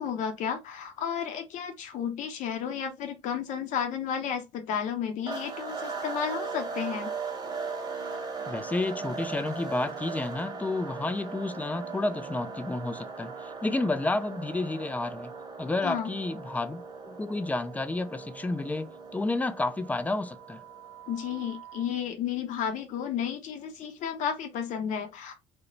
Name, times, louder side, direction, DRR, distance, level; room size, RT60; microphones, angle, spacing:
voice 1, 0.0-7.1 15.8-16.1 21.1-25.3, left 8 dB, 65° left, 0.6 m, -32 dB
sound 1, 5.3-21.9, right 4 dB, 30° right, 0.9 m, -39 dB
voice 2, 8.5-15.3 15.6-20.6, left 2 dB, 10° left, 0.3 m, -31 dB
2.4 x 2.1 x 3.0 m
supercardioid pair, 75°, 14 cm